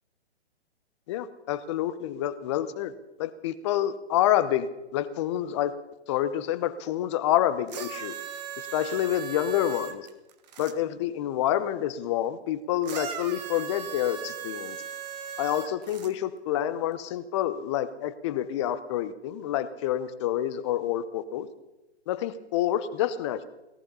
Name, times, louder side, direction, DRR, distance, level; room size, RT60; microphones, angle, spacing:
voice 1, 1.1-2.9 3.2-5.7 6.1-8.1 8.7-10.0 10.6-14.8 15.4-21.5 22.1-23.4, left 12 dB, 25° left, 13 dB, 0.8 m, -28 dB
sound 1, 7.7-10.7 12.8-16.1 17.0-17.1, right 8 dB, 40° right, 1.3 m, -38 dB
18.0 x 13.5 x 5.5 m, 0.99 s
figure-of-eight pair, 135°, 34 cm